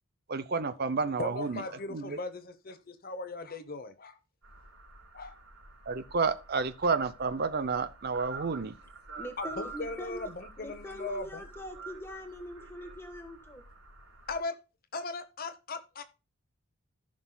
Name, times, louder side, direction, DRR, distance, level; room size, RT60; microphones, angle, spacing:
voice 1, 0.3-1.6 1.9-2.2 5.9-8.7, right 4 dB, 45° right, 0.6 m, -30 dB
voice 2, 1.2-4.2 5.1-5.3 9.4-11.4 14.3-14.6 14.9-16.0, left 3 dB, 40° left, 0.9 m, -38 dB
sound 1, 4.4-14.4, right 3 dB, 70° right, 4.4 m, -48 dB
voice 3, 9.2-10.3 10.6-13.6, equal, 10° left, 1.4 m, -43 dB
15.0 x 6.1 x 2.3 m
head